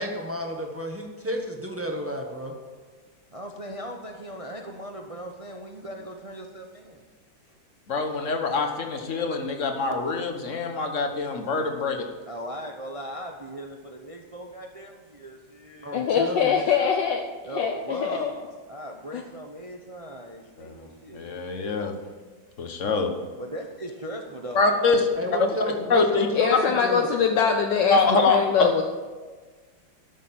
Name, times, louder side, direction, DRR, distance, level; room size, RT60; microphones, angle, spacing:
voice 1, 0.0-2.5 15.8-16.6 25.1-27.1, equal, 10° right, 1 dB, 1.2 m, -31 dB
voice 2, 3.3-7.0 12.3-16.5 17.4-21.3 23.3-25.3 25.7-25.8 26.1-26.2, equal, 50° right, 3 dB, 0.4 m, -39 dB
voice 3, 7.9-12.0 20.6-20.9 21.1-21.9 22.6-23.1 24.5-25.1 25.7-26.3 27.9-28.4, left 3 dB, 45° left, 5 dB, 1.4 m, -24 dB
voice 4, 15.9-17.2 17.5-18.3 19.1-19.2 26.3-28.0 28.3-28.8, left 7 dB, 70° left, 3 dB, 1.4 m, -23 dB
13.0 x 6.6 x 7.5 m, 1.4 s
omnidirectional pair, 2.1 m